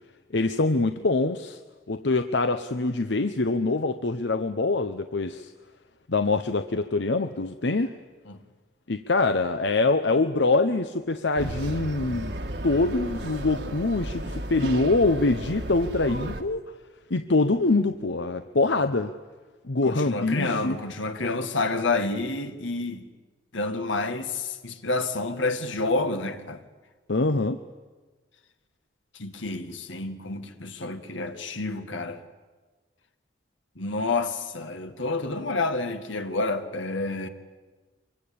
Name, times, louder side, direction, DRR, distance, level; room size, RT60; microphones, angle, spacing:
voice 1, 0.3-1.6 1.9-5.5 6.1-7.9 8.9-16.6 17.1-19.1 19.6-20.8 27.1-27.6, left 3 dB, 70° left, 0.9 m, -24 dB
sound 1, 11.4-16.4, right 1 dB, 65° right, 1.8 m, -34 dB
voice 2, 19.8-23.1 23.5-26.6 29.1-32.2 33.8-37.3, left 3 dB, 90° left, 2.0 m, -29 dB
25.5 x 23.5 x 8.7 m
head